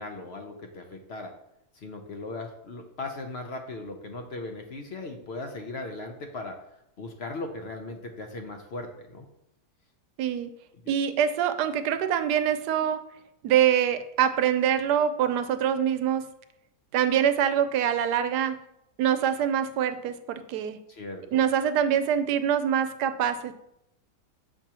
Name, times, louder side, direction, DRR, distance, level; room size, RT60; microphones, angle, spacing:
voice 1, 0.0-1.3 1.7-6.6 7.0-9.3 10.8-10.9 20.9-21.4, left 2 dB, 55° left, 4 dB, 0.7 m, -38 dB
voice 2, 10.2-10.5 10.9-13.0 13.4-16.3 16.9-18.6 19.0-20.8 21.3-23.5, right 9 dB, 85° right, 10 dB, 1.2 m, -24 dB
6.8 x 6.0 x 2.9 m, 0.81 s
omnidirectional pair, 1.7 m